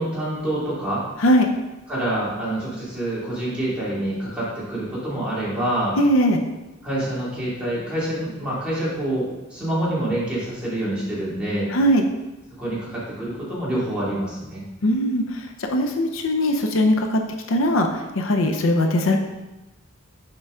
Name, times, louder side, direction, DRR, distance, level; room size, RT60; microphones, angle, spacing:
voice 1, 0.0-1.1 1.9-6.0 6.8-11.7 12.5-14.6, right 1 dB, 5° right, -9 dB, 2.3 m, -26 dB
voice 2, 6.0-6.4 11.7-12.1 14.8-17.2 17.5-19.2, equal, 75° left, 4 dB, 0.6 m, -20 dB
6.7 x 4.6 x 3.6 m, 1.0 s
head